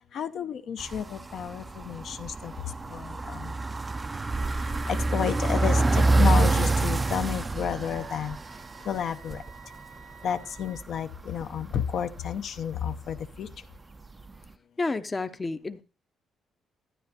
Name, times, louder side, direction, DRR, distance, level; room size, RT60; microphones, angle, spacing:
voice 1, 0.1-2.5 2.9-3.5 4.9-8.4 8.9-9.4 10.2-13.5, left 8 dB, 65° left, 0.6 m, -31 dB
sound 1, 0.8-9.7 10.0-10.1 10.4-12.2 12.6-13.3 13.5-13.6 14.2-14.3, right 2 dB, 25° right, 0.4 m, -26 dB
sound 2, 4.3-10.8, right 6 dB, 55° right, 0.7 m, -49 dB
voice 2, 14.8-15.8, left 3 dB, 25° left, 0.6 m, -30 dB
12.0 x 9.5 x 2.8 m
cardioid pair, 90°, 0 cm